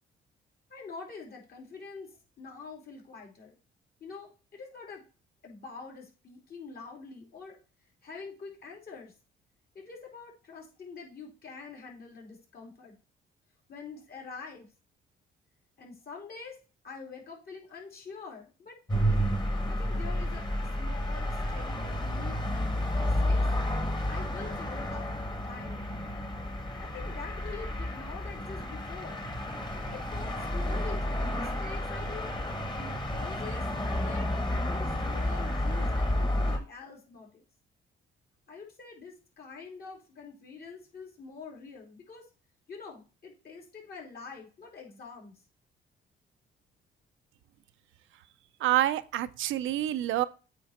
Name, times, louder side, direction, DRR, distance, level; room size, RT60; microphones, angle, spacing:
voice 1, 0.7-3.5 4.0-5.0 5.4-7.6 8.0-9.1 9.7-13.0 13.7-14.7 15.8-16.6 16.8-18.8 19.7-23.5 24.0-25.9 26.8-29.3 29.9-32.3 32.7-34.3 34.6-37.4 38.5-42.2 42.7-45.4, left 4 dB, 50° left, 0 dB, 3.1 m, -45 dB
sound 1, 18.9-36.6, left 1 dB, 20° left, 1.6 m, -31 dB
voice 2, 48.6-50.2, right 13 dB, 80° right, 13 dB, 0.6 m, -27 dB
8.4 x 4.0 x 4.3 m, 0.35 s
cardioid pair, 90°, 20 cm